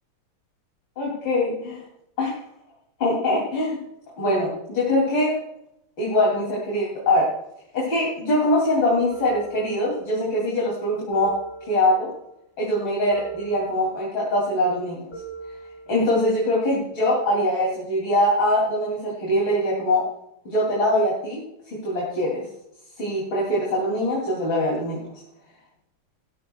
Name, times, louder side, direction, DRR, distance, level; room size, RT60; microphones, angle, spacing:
voice 1, 1.0-1.8 2.2-2.4 3.0-3.8 4.2-5.3 6.0-7.3 7.7-11.3 11.6-12.1 12.6-15.0 15.9-20.0 20.5-22.4 23.0-25.0, left 1 dB, 65° left, -5 dB, 3.7 m, -23 dB
sound 1, 9.1-10.3 11.1-12.3 13.1-14.3 15.1-16.3, right 4 dB, 15° left, 3.2 m, -40 dB
17.5 x 12.5 x 2.3 m, 0.81 s
omnidirectional pair, 2.3 m